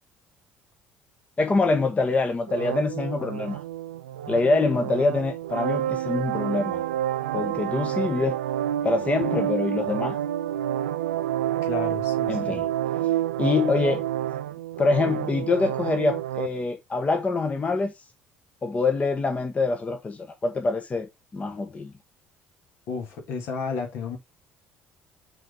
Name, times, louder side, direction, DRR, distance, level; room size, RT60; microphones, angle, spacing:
voice 1, 1.4-3.6 4.3-6.8 7.3-8.3 8.8-10.2 12.3-12.7 13.0-14.0 14.8-17.9 18.6-21.9, left 3 dB, 25° left, 1.2 m, -25 dB
sound 1, 2.5-16.5, right 12 dB, 75° right, 0.4 m, -29 dB
voice 2, 11.6-12.6 22.9-24.2, left 5 dB, 55° left, 2.1 m, -32 dB
5.9 x 4.9 x 3.5 m
figure-of-eight pair, 55°, 5 cm